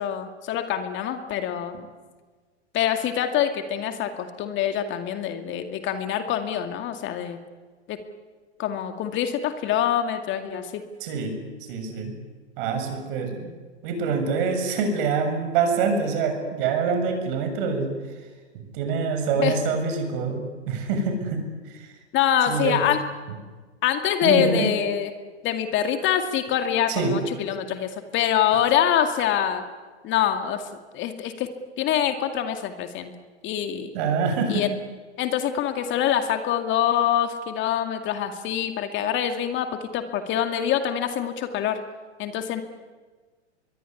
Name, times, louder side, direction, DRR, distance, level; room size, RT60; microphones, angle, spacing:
voice 1, 0.0-1.8 2.7-7.4 7.9-8.0 8.6-10.8 19.4-19.6 22.1-23.0 23.8-25.1 25.4-29.6 30.0-30.7 30.9-31.5 31.8-33.1 33.4-33.9 34.5-34.7 35.2-41.8 42.2-42.6, left 10 dB, 35° left, 7 dB, 2.3 m, -25 dB
voice 2, 11.0-11.4 11.7-12.1 12.6-13.6 13.8-17.9 18.7-21.4 21.7-21.9 22.5-22.8 24.2-24.7 26.9-27.2 33.9-34.6, right 5 dB, 50° right, 6 dB, 7.3 m, -25 dB
25.0 x 22.5 x 9.7 m, 1.4 s
hypercardioid pair, 105°, 34 cm